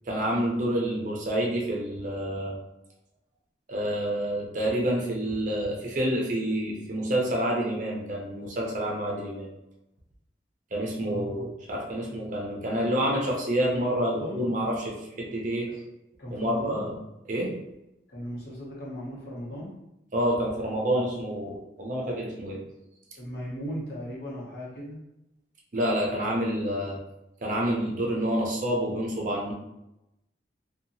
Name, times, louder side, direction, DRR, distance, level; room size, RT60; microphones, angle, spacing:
voice 1, 0.1-2.6 3.7-9.5 10.7-15.7 16.3-17.0 17.3-17.5 20.1-22.6 25.7-27.0 27.4-29.5, right 1 dB, 45° right, -2 dB, 0.5 m, -28 dB
voice 2, 11.1-11.5 12.1-12.3 13.0-13.1 13.9-14.5 16.2-16.9 18.1-19.7 23.2-25.0, equal, 60° left, -5 dB, 0.9 m, -37 dB
2.8 x 2.3 x 2.6 m, 0.90 s
head